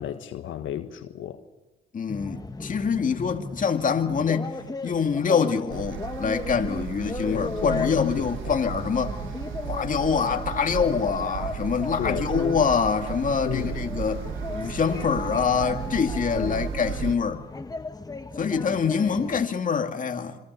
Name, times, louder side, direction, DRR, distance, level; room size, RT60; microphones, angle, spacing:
voice 1, 0.0-1.4 7.2-8.6 12.0-12.6 13.4-13.9 16.3-16.7, left 11 dB, 80° left, 1.4 m, -32 dB
voice 2, 1.9-4.6 4.8-9.2 9.7-14.2 14.5-17.4 18.4-20.4, left 6 dB, 40° left, 2.2 m, -25 dB
sound 1, 2.1-19.5, left 3 dB, 20° left, 1.2 m, -37 dB
sound 2, 5.7-17.2, right 9 dB, 80° right, 1.3 m, -35 dB
26.5 x 23.5 x 6.8 m
cardioid pair, 90°, 20 cm